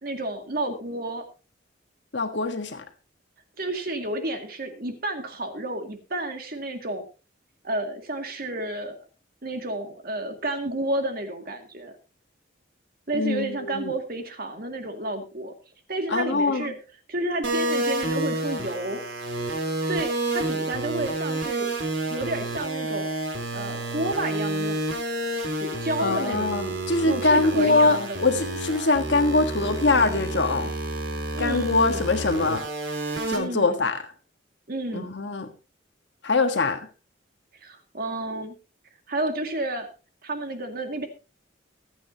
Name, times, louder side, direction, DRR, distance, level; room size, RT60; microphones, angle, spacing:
voice 1, 0.0-1.3 3.6-7.0 7.6-9.0 9.4-11.9 13.1-15.5 15.9-16.7 17.1-19.0 19.8-21.7 22.0-23.1 23.5-24.8 25.6-26.5 27.0-28.2 31.3-32.1 33.3-33.7 34.7-35.1 37.6-38.5 39.1-39.9 40.2-41.1, right 1 dB, 50° right, 5 dB, 2.2 m, -31 dB
voice 2, 2.1-2.8 13.1-13.9 16.1-16.7 26.0-30.7 31.4-32.6 33.3-34.0 34.9-35.5 36.2-36.8, left 3 dB, 70° left, 6 dB, 1.4 m, -23 dB
sound 1, 17.4-33.4, right 2 dB, 80° right, 3.8 m, -29 dB
24.0 x 8.6 x 2.8 m, 0.32 s
head